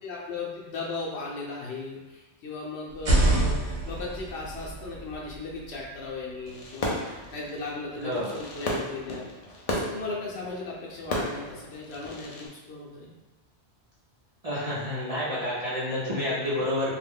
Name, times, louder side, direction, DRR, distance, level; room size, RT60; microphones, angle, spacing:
voice 1, 0.0-9.3 9.7-13.1, left 3 dB, 80° left, -3 dB, 0.9 m, -37 dB
sound 1, 2.9-6.7, right 1 dB, 70° right, 1.0 m, -28 dB
Fireworks, 6.5-12.5, left 1 dB, 50° left, 0.5 m, -35 dB
voice 2, 8.0-8.3 14.4-16.9, left 1 dB, 40° right, -10 dB, 0.7 m, -29 dB
2.5 x 2.1 x 3.5 m, 1.1 s
omnidirectional pair, 1.1 m